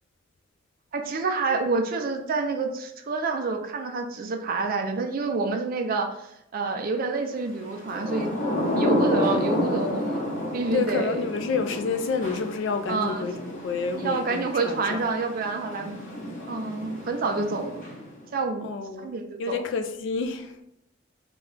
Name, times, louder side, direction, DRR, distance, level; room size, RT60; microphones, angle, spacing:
voice 1, 0.9-8.3 8.7-10.2 10.5-11.2 12.9-13.3 14.0-16.0 16.3-17.9 18.3-19.6, right 3 dB, 50° right, 0.4 m, -28 dB
Thunder / Rain, 7.7-18.3, left 1 dB, 40° left, 0.8 m, -30 dB
voice 2, 10.7-15.0 18.6-19.1 19.4-20.5, left 5 dB, 70° left, 0.3 m, -29 dB
2.3 x 2.2 x 3.6 m
head